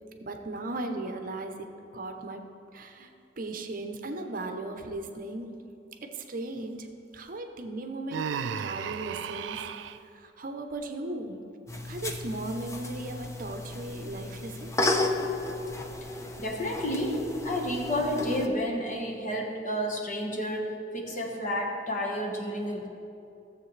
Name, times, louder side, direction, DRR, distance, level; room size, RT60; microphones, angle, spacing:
voice 1, 0.2-2.4 2.7-3.1 3.4-5.6 6.0-9.6 10.1-11.5 11.8-14.7, right 2 dB, 50° right, 5 dB, 0.7 m, -37 dB
Human voice, 8.1-10.0, right 7 dB, 90° right, 0.3 m, -34 dB
sound 1, 11.7-18.5, left 2 dB, 15° left, 0.7 m, -33 dB
voice 2, 16.4-22.9, equal, 45° left, -1 dB, 1.4 m, -30 dB
15.5 x 7.3 x 3.2 m, 2.7 s
head